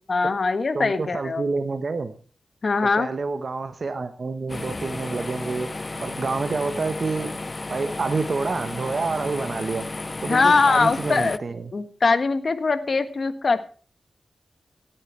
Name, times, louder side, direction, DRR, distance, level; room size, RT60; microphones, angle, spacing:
voice 1, 0.1-1.4 2.6-3.1 10.3-11.4 11.7-13.6, left 4 dB, 55° left, 12 dB, 1.5 m, -21 dB
voice 2, 0.7-2.1 3.0-5.7 6.0-7.4 7.7-9.9 10.2-11.7, right 4 dB, 60° right, 9 dB, 1.1 m, -28 dB
sound 1, 4.5-11.4, left 2 dB, 35° left, 0.5 m, -33 dB
16.0 x 8.9 x 4.6 m, 0.40 s
cardioid pair, 60°, 0 cm